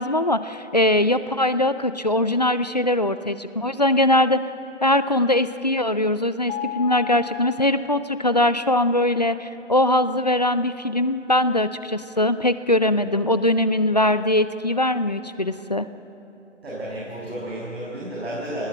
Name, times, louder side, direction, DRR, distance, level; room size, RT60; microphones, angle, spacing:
voice 1, 0.0-4.4 4.8-15.9, left 1 dB, 35° left, 13 dB, 0.5 m, -21 dB
Mallet percussion, 6.5-8.5, left 11 dB, 60° left, 2.6 m, -35 dB
voice 2, 16.6-18.7, right 1 dB, 55° right, -6 dB, 6.6 m, -32 dB
27.5 x 19.0 x 7.7 m, 3.0 s
figure-of-eight pair, 155°, 37 cm